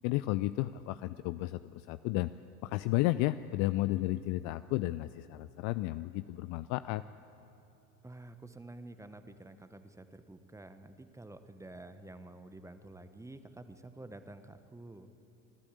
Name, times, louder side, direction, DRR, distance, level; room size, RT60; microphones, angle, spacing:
voice 1, 0.0-2.3 2.6-7.0, left 17 dB, 40° left, 14 dB, 0.4 m, -32 dB
voice 2, 8.0-15.1, right 2 dB, 5° right, 10 dB, 1.0 m, -50 dB
25.0 x 13.0 x 8.3 m, 2.8 s
figure-of-eight pair, 80°, 46 cm